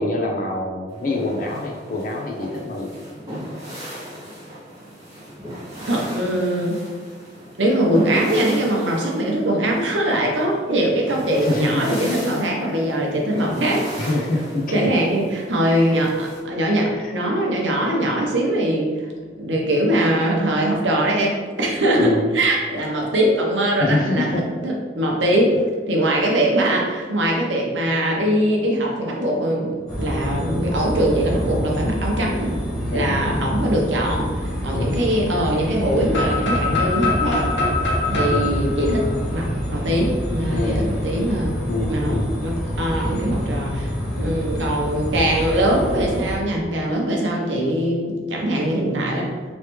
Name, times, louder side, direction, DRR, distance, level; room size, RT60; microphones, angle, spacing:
voice 1, 0.0-2.9 11.4-11.8 12.6-12.7 13.3-13.5 14.0-15.1 15.9-16.0 17.0-17.1 22.0-22.3 23.8-24.5 32.9-33.2 34.7-34.9 38.3-38.5 40.5-40.9 41.7-42.4 44.2-44.4, left 2 dB, 45° left, 0 dB, 0.5 m, -25 dB
sound 1, 0.9-16.4, equal, 20° right, 1.2 m, -37 dB
voice 2, 5.9-6.8 7.6-13.9 14.7-25.6 25.9-32.6 32.9-37.8 38.1-41.6 41.9-43.9 44.2-49.3, right 1 dB, 80° right, -1 dB, 0.8 m, -22 dB
sound 2, 29.9-46.4, equal, 5° left, 0.8 m, -27 dB
sound 3, 36.1-40.0, left 3 dB, 85° left, 0.7 m, -24 dB
3.2 x 3.1 x 3.0 m, 1.5 s
head